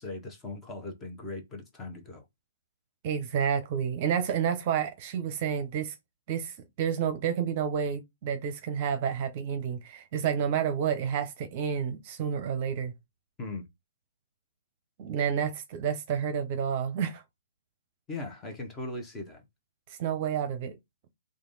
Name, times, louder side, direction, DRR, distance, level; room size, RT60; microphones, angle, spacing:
voice 1, 0.0-2.2 13.4-13.7 18.1-19.4, left 2 dB, 15° left, 1.1 m, -39 dB
voice 2, 3.0-5.9 6.3-12.9 15.0-17.2 20.0-20.8, right 8 dB, 40° right, 0.8 m, -30 dB
3.3 x 2.5 x 4.0 m
hypercardioid pair, 135°, 0 cm